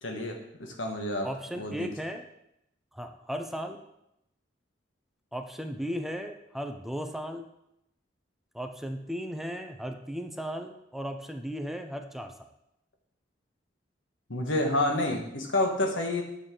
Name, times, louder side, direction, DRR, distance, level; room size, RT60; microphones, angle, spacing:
voice 1, 0.0-1.3 1.5-1.9 14.3-16.2, left 1 dB, 90° left, 2 dB, 1.4 m, -29 dB
voice 2, 1.2-2.2 2.9-3.8 5.3-7.5 8.5-12.5, equal, ahead, 6 dB, 0.5 m, -36 dB
8.8 x 6.4 x 3.8 m, 0.82 s
head